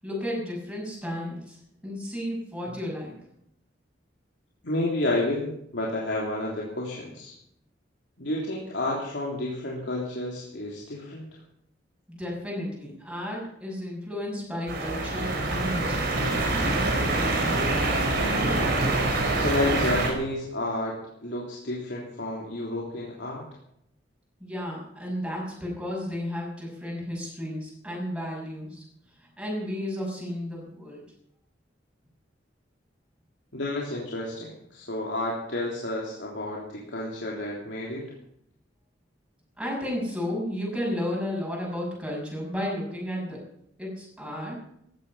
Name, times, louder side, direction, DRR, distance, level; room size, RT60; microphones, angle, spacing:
voice 1, 0.0-1.6 1.8-3.1 12.1-17.6 24.4-28.8 29.2-31.0 39.6-43.4 43.8-44.6, left 1 dB, 5° right, -3 dB, 6.7 m, -33 dB
voice 2, 4.6-7.3 8.2-11.3 19.3-20.9 21.2-23.5 33.5-38.0, left 1 dB, 70° left, -4 dB, 3.4 m, -30 dB
sound 1, 14.7-20.1, right 2 dB, 60° right, 4.4 m, -25 dB
17.0 x 13.5 x 5.6 m, 0.74 s
head